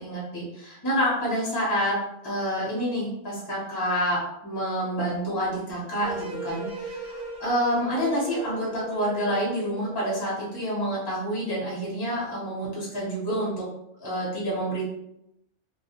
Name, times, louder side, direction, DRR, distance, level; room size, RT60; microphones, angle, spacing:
voice 1, 0.0-13.7 14.0-14.9, equal, 25° left, -6 dB, 0.7 m, -28 dB
sound 1, 6.0-10.3, right 3 dB, 65° right, 0.8 m, -38 dB
2.3 x 2.1 x 2.9 m, 0.82 s
omnidirectional pair, 1.2 m